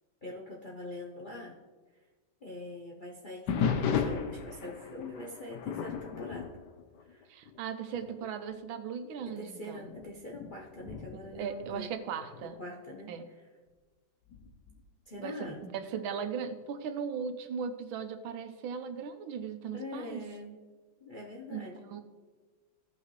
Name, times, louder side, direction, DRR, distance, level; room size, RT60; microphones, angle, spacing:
voice 1, 0.2-1.6 2.4-6.5 7.0-7.3 9.2-11.9 12.4-13.1 15.1-15.7 19.7-20.6 21.0-21.9, left 1 dB, 50° left, -3 dB, 0.6 m, -43 dB
sound 1, 3.5-7.6 7.9-8.3 8.9-9.0 9.8-12.5 14.3-14.8, left 7 dB, 65° left, 1.3 m, -35 dB
voice 2, 7.3-9.9 11.3-12.6 13.1-13.2 15.2-20.2 21.5-21.6 21.9-22.0, right 7 dB, 90° right, 9 dB, 1.5 m, -38 dB
15.0 x 5.8 x 3.2 m, 1.3 s
omnidirectional pair, 2.1 m